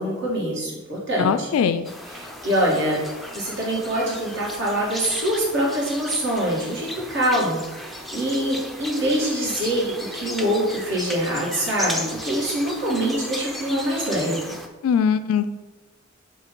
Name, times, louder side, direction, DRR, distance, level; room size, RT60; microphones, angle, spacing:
voice 1, 0.0-1.5 2.1-3.0 3.3-14.5, right 1 dB, 60° right, -5 dB, 2.0 m, -24 dB
voice 2, 1.2-1.9 14.8-15.5, left 7 dB, 90° left, 11 dB, 0.3 m, -21 dB
sound 1, 1.8-14.7, left 1 dB, ahead, 0.4 m, -35 dB
7.5 x 2.8 x 4.5 m, 1.1 s
head